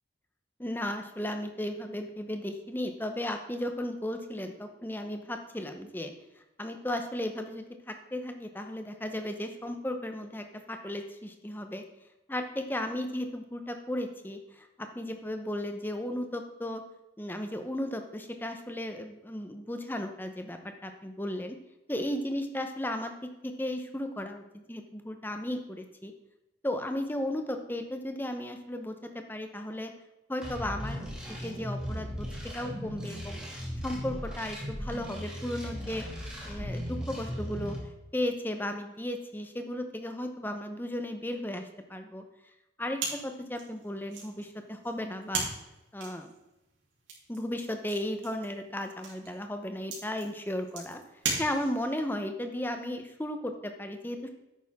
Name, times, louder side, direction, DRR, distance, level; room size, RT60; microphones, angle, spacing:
voice 1, 0.6-6.1 6.6-11.8 12.3-16.8 17.2-21.6 21.9-26.1 26.6-29.9 30.3-31.0 31.3-32.3 32.5-33.4 33.8-36.0 36.4-37.8 38.1-42.2 42.8-45.5 45.9-46.3 47.3-51.0 51.4-54.3, left 1 dB, 10° left, 6 dB, 0.9 m, -35 dB
sound 1, 30.4-37.8, equal, 5° right, 2.3 m, -37 dB
sound 2, 43.0-52.0, right 4 dB, 90° right, 3.3 m, -39 dB
10.5 x 8.8 x 3.7 m, 0.97 s
head